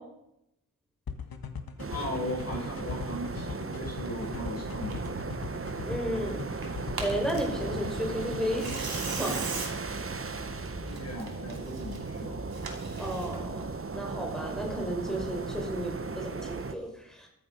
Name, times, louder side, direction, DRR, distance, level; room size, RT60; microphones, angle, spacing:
sound 1, 1.1-8.8, left 6 dB, 80° left, 1.4 m, -40 dB
sound 2, 1.8-16.7, right 4 dB, 40° right, 1.0 m, -36 dB
voice 1, 1.9-5.0 10.8-12.4, left 1 dB, 45° left, -2 dB, 7.6 m, -38 dB
Tearing, 4.0-13.6, right 3 dB, 85° right, 2.9 m, -40 dB
voice 2, 5.8-6.4 7.0-8.8 9.2-9.4 13.0-13.6 13.9-17.3, equal, ahead, 1 dB, 5.3 m, -33 dB
14.5 x 13.0 x 5.4 m, 0.80 s
wide cardioid pair, 75°, 35 cm